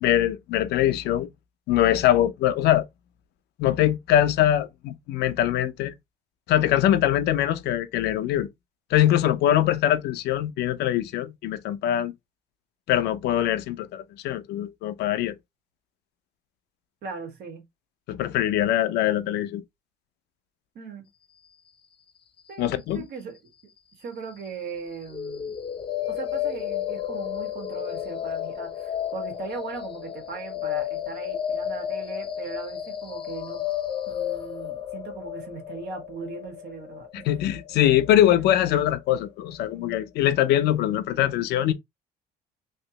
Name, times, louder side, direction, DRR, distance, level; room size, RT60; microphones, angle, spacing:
voice 1, 0.0-1.3 1.7-2.9 3.6-5.9 6.5-8.5 8.9-12.1 12.9-15.4 18.1-19.6 22.6-23.0 37.3-41.7, left 12 dB, 80° left, 0.6 m, -22 dB
voice 2, 17.0-17.6 20.8-21.0 22.5-23.4 24.0-25.6 26.1-33.6 34.1-37.2, right 5 dB, 70° right, 1.6 m, -38 dB
sound 1, 25.1-39.1, left 10 dB, 30° left, 0.7 m, -32 dB
3.1 x 2.9 x 2.8 m
cardioid pair, 110°, 17 cm